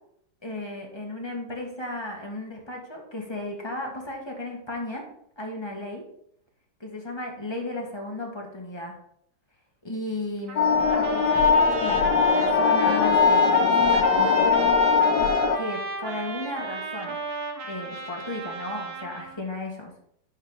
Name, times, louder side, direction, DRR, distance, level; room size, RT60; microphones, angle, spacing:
voice 1, 0.4-5.0 5.4-6.0 6.8-9.0 9.8-12.1 12.3-14.7 15.6-17.2 17.6-19.9, left 2 dB, 15° left, 0 dB, 1.7 m, -34 dB
Trumpet, 10.5-19.4, right 4 dB, 70° right, 1.6 m, -34 dB
sound 1, 10.6-15.6, left 5 dB, 85° left, 1.4 m, -20 dB
11.0 x 5.1 x 4.0 m, 0.70 s
omnidirectional pair, 1.7 m